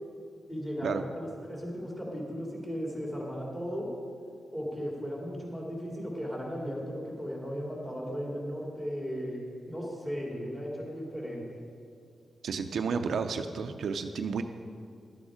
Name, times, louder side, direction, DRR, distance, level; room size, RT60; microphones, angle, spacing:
voice 1, 0.5-3.9 4.5-9.4 9.6-11.4, equal, 10° left, -3 dB, 2.9 m, -36 dB
voice 2, 12.4-14.4, right 5 dB, 70° right, 7 dB, 0.5 m, -31 dB
12.0 x 8.6 x 5.1 m, 2.3 s
wide cardioid pair, 110°, 0 cm